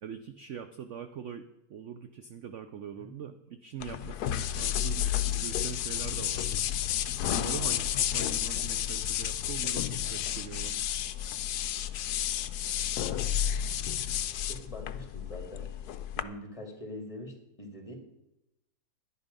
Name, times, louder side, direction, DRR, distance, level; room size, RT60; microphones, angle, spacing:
voice 1, 0.0-6.6 7.2-10.8, right 8 dB, 65° right, 9 dB, 0.7 m, -42 dB
sound 1, 3.8-16.2, left 11 dB, 70° left, 1.1 m, -31 dB
voice 2, 14.5-15.7 16.2-17.9, left 1 dB, 20° left, 2 dB, 2.4 m, -43 dB
11.5 x 10.5 x 5.3 m, 0.90 s
omnidirectional pair, 2.0 m